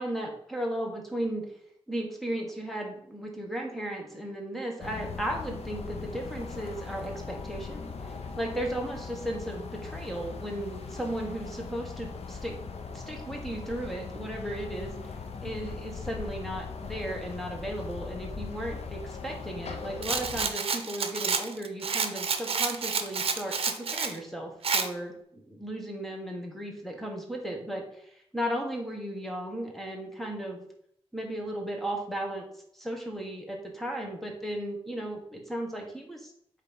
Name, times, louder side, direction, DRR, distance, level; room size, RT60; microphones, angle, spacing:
voice 1, 0.0-1.5 1.9-12.5 12.9-14.9 15.4-30.6 31.1-32.5 32.7-36.3, right 1 dB, ahead, 1 dB, 1.7 m, -35 dB
sound 1, 4.8-20.5, left 5 dB, 80° left, 0.9 m, -40 dB
Rattle, 20.0-24.1 24.6-24.9, right 5 dB, 65° right, 0.8 m, -29 dB
8.1 x 3.3 x 5.6 m, 0.70 s
wide cardioid pair, 110°, 11 cm